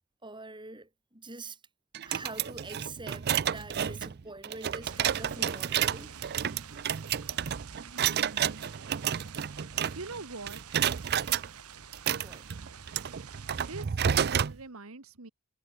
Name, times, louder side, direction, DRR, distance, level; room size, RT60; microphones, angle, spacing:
voice 1, 0.2-1.6 2.1-6.2 12.1-12.5, right 3 dB, 20° right, 3.5 m, -45 dB
sound 1, 1.9-10.2 10.5-11.5 11.9-14.6, right 9 dB, 45° right, 0.4 m, -30 dB
sound 2, 4.8-13.9, right 7 dB, 85° right, 1.7 m, -48 dB
voice 2, 7.9-8.7 9.9-10.6 12.7-12.8 13.7-15.3, right 3 dB, 70° right, 1.6 m, -43 dB
head